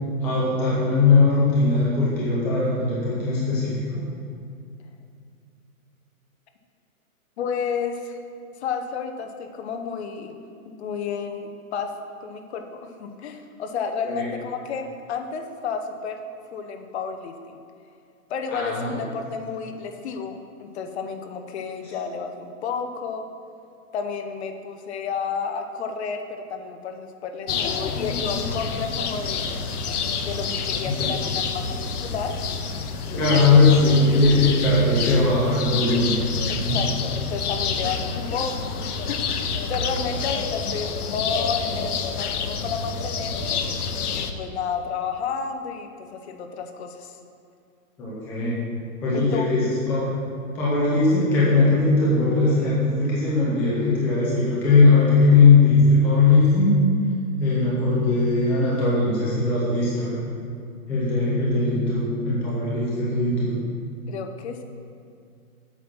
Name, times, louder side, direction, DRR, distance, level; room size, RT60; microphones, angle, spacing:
voice 1, 0.2-3.8 14.0-14.2 18.5-18.9 31.0-31.1 33.1-36.2 36.6-36.8 48.0-48.6 49.0-50.2 50.5-56.7 57.4-60.2 60.9-63.6, left 3 dB, 5° left, -8 dB, 0.4 m, -19 dB
voice 2, 7.4-8.2 8.6-10.4 10.6-11.9 12.2-16.2 16.5-17.6 18.3-23.3 23.9-29.5 30.2-32.4 36.5-43.6 44.1-47.2 49.1-49.5 50.9-51.0 52.9-53.0 64.1-64.6, left 6 dB, 45° left, 6 dB, 0.9 m, -31 dB
sound 1, 27.5-44.3, left 5 dB, 90° left, 0.9 m, -28 dB
8.3 x 5.6 x 5.9 m, 2.4 s
hypercardioid pair, 150°, 44 cm